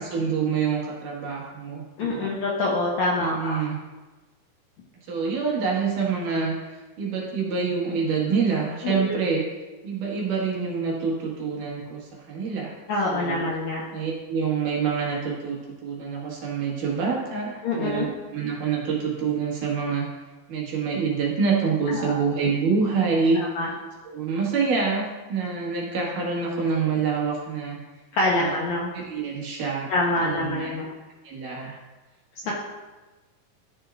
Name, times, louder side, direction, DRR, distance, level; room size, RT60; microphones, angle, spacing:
voice 1, 0.0-2.3 3.2-3.8 5.1-9.4 9.8-12.7 13.1-13.4 13.9-18.1 18.3-20.1 20.5-23.4 24.0-27.8 28.3-28.6 28.9-29.9 30.2-30.7 31.2-31.8 32.4-32.5, right 5 dB, 65° right, -3 dB, 3.0 m, -26 dB
voice 2, 2.0-3.6 8.8-9.2 12.9-13.9 17.6-18.1 21.9-22.2 23.3-23.7 28.1-28.9 29.9-30.9 32.5-32.6, left 2 dB, 70° left, -3 dB, 1.8 m, -26 dB
13.5 x 6.5 x 2.5 m, 1.2 s
omnidirectional pair, 4.4 m